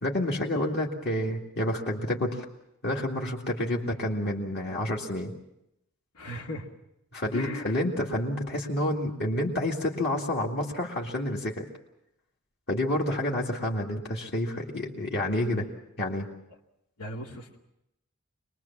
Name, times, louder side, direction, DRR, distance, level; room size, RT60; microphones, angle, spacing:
voice 1, 0.0-2.5 2.8-5.3 7.1-11.7 12.7-15.7 16.0-16.3, left 1 dB, 50° left, -2 dB, 2.3 m, -29 dB
voice 2, 6.1-6.7 7.3-7.7 17.0-17.6, left 1 dB, 80° left, 0 dB, 2.5 m, -37 dB
25.5 x 20.5 x 7.3 m, 0.83 s
head